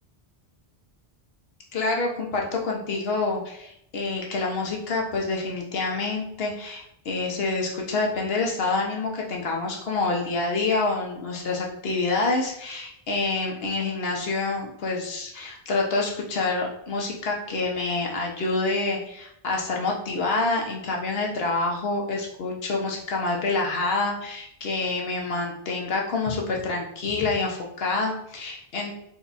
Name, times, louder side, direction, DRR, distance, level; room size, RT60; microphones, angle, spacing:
voice 1, 1.7-29.0, left 3 dB, 75° left, 0 dB, 1.1 m, -27 dB
4.1 x 2.3 x 4.0 m, 0.76 s
omnidirectional pair, 1.0 m